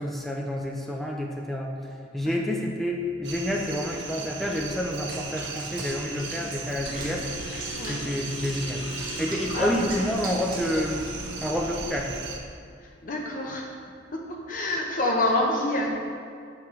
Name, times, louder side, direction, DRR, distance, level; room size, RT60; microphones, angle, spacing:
voice 1, 0.0-8.9 9.2-12.1, left 1 dB, ahead, -1 dB, 0.5 m, -29 dB
sound 1, 3.2-12.4, right 4 dB, 65° right, 0.6 m, -37 dB
sound 2, 4.1-4.6 5.0-6.0 6.8-11.5, left 1 dB, 90° left, 1.0 m, -40 dB
Water / Bathtub (filling or washing), 5.1-10.9, right 2 dB, 45° right, 1.0 m, -41 dB
voice 2, 9.5-9.9 12.8-13.7 14.1-16.0, left 1 dB, 45° left, 0 dB, 0.8 m, -27 dB
6.5 x 5.8 x 3.2 m, 2.3 s
head